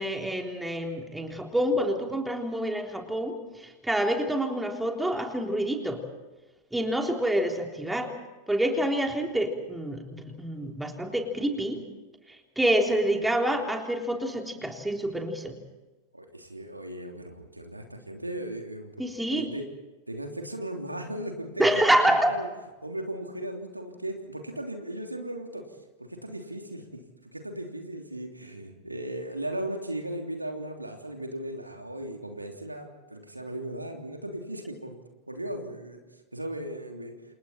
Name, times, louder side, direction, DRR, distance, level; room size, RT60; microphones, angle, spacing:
voice 1, 0.0-6.0 6.7-8.1 8.5-11.8 12.5-15.5 19.0-19.5 21.6-22.3, right 1 dB, 5° right, 3 dB, 3.5 m, -27 dB
voice 2, 16.1-18.9 19.3-19.7 20.1-22.5 22.8-25.7 26.0-35.0 35.3-36.0 36.3-37.2, right 1 dB, 85° right, 3 dB, 3.2 m, -37 dB
30.0 x 28.0 x 4.4 m, 1.1 s
figure-of-eight pair, 90°, 0 cm